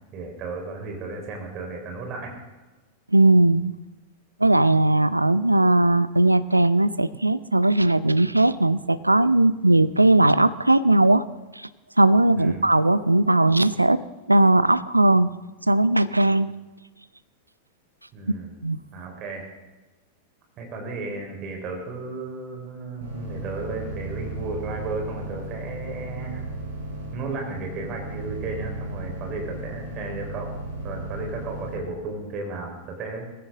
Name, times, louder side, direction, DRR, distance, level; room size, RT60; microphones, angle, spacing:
voice 1, 0.1-2.3 12.3-12.6 18.1-18.5 18.9-19.4 20.6-26.4 27.1-30.6 30.8-33.3, right 3 dB, 35° right, 1 dB, 4.3 m, -34 dB
voice 2, 3.1-3.7 4.4-11.2 11.5-11.7 12.0-14.0 14.3-15.3 15.7-16.5 18.6-18.8, right 2 dB, 85° right, 17 dB, 0.5 m, -18 dB
sound 1, 23.0-31.8, right 2 dB, 65° right, 4.4 m, -35 dB
19.0 x 16.0 x 3.8 m, 1.1 s
figure-of-eight pair, 90°, 0 cm